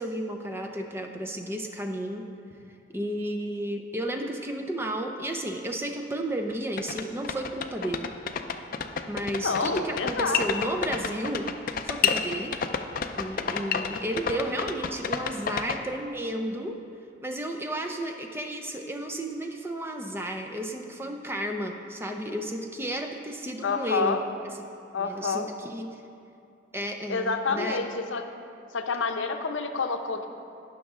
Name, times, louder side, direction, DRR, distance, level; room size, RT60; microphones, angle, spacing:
voice 1, 0.0-2.2 2.9-8.1 9.1-11.5 11.8-12.5 13.2-16.8 17.2-24.2 25.0-26.0 26.7-27.8, right 1 dB, 10° right, 3 dB, 0.5 m, -32 dB
sound 1, 6.5-6.6 6.8-15.8, left 6 dB, 45° left, 0.4 m, -29 dB
voice 2, 9.4-10.7 23.6-24.2 24.9-25.5 27.1-28.2 28.7-30.3, left 4 dB, 80° left, 6 dB, 0.7 m, -28 dB
16.5 x 6.1 x 3.7 m, 2.6 s
head